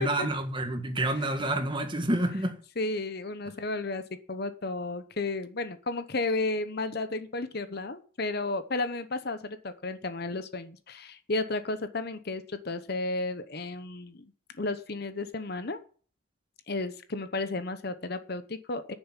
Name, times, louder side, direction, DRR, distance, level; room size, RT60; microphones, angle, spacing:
voice 1, 0.0-2.6, right 1 dB, 25° right, 1.7 m, -28 dB
voice 2, 2.8-14.3 14.6-15.8 16.7-18.9, left 2 dB, 55° left, 1.0 m, -33 dB
9.5 x 7.1 x 9.0 m
head